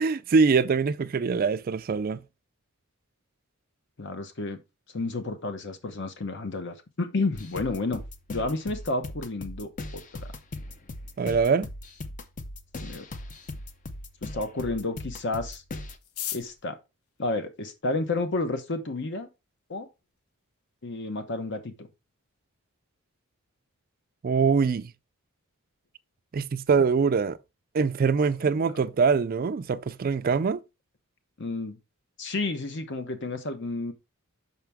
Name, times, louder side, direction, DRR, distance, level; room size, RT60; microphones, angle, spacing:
voice 1, 0.0-2.2 11.2-11.7 24.2-24.9 26.3-27.4 27.7-30.6, right 5 dB, 45° right, 0.4 m, -23 dB
voice 2, 4.0-4.6 4.9-8.0 8.3-10.3 12.8-13.1 14.2-15.6 16.3-16.8 17.2-19.3 19.7-19.9 20.8-21.9 28.6-28.7 31.4-31.8 32.2-33.9, left 2 dB, 55° left, 1.0 m, -31 dB
sound 1, 7.3-16.0, left 2 dB, 35° left, 0.6 m, -39 dB
sound 2, 16.0-18.2 19.0-19.1 19.4-19.5 19.7-20.2 20.5-20.6 20.8-21.2 21.6-21.7 22.1-22.4, left 10 dB, 90° left, 0.5 m, -39 dB
5.8 x 5.8 x 3.5 m
head